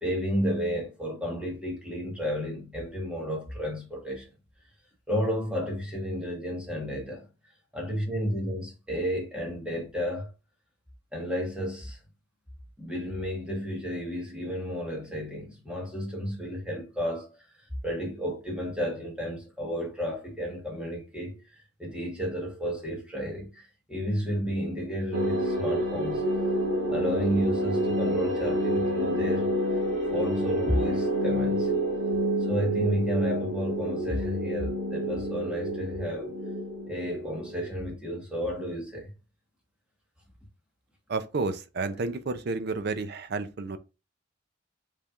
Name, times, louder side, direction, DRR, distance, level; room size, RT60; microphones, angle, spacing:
voice 1, 0.0-4.3 5.1-7.3 7.7-10.3 11.1-12.0 12.8-17.3 17.6-23.6 23.9-26.3 26.9-29.5 30.1-31.7 32.4-36.3 36.9-39.1, equal, 5° right, 1.3 m, -32 dB
sound 1, 25.1-37.9, equal, 75° right, 1.4 m, -28 dB
voice 2, 41.1-43.8, right 3 dB, 55° right, 0.5 m, -31 dB
5.3 x 3.3 x 2.4 m
head